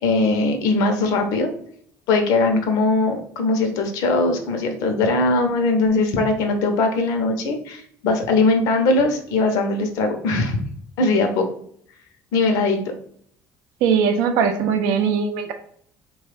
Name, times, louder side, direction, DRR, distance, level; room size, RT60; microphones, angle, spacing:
voice 1, 0.0-1.5 2.1-10.6 11.0-11.4 12.3-12.8, left 3 dB, 80° left, 5 dB, 0.7 m, -20 dB
voice 2, 13.8-15.5, right 6 dB, 85° right, 7 dB, 0.5 m, -20 dB
3.2 x 2.3 x 3.2 m, 0.63 s
cardioid pair, 115°, 6 cm